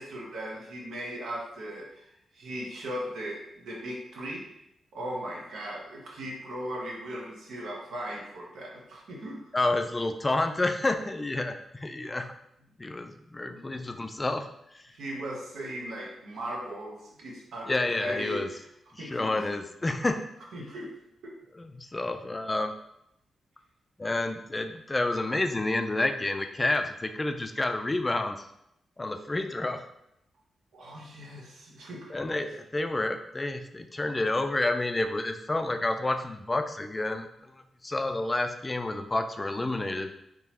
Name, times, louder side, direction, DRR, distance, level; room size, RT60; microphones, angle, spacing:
voice 1, 0.0-2.1 2.3-4.5 4.9-9.4 13.4-13.9 14.9-17.7 18.0-18.6 19.0-19.5 20.5-21.0 21.2-21.4 30.7-32.1, right 1 dB, 85° right, -2 dB, 0.9 m, -38 dB
voice 2, 9.5-12.3 12.8-14.5 14.7-14.8 17.7-18.5 18.9-20.2 21.6-22.7 24.0-28.5 29.0-29.8 32.1-40.1, left 2 dB, 25° left, 7 dB, 0.3 m, -29 dB
3.7 x 3.0 x 2.9 m, 0.78 s
cardioid pair, 80°, 0 cm